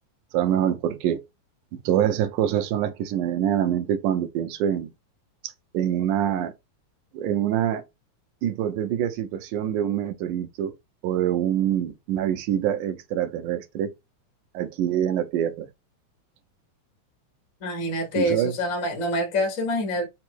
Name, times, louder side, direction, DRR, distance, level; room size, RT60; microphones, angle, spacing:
voice 1, 0.3-1.2 1.9-4.9 5.4-6.5 7.1-7.8 8.4-10.7 11.0-13.9 14.5-15.7 18.2-18.5, right 10 dB, 85° right, 2.2 m, -25 dB
voice 2, 17.6-20.1, equal, 70° left, 0.7 m, -26 dB
5.4 x 2.0 x 4.5 m
omnidirectional pair, 3.6 m